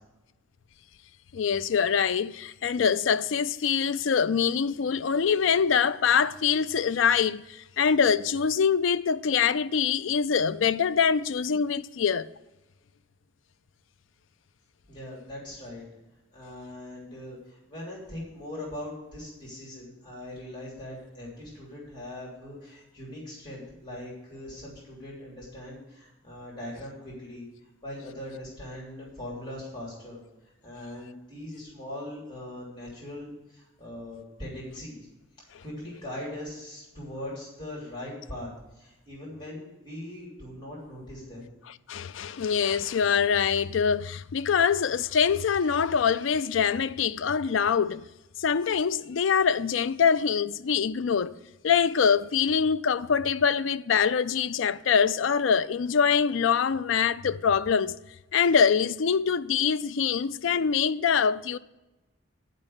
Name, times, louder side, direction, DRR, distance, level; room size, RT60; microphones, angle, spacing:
voice 1, 1.3-7.4 7.8-12.3 41.9-48.0 48.4-51.4 51.6-58.0 58.3-61.6, left 6 dB, 75° left, 0.4 m, -24 dB
voice 2, 14.9-15.8 16.3-30.2 30.6-35.1 35.4-38.5 38.8-41.5, left 1 dB, 25° left, 3.2 m, -41 dB
10.5 x 5.4 x 7.2 m
head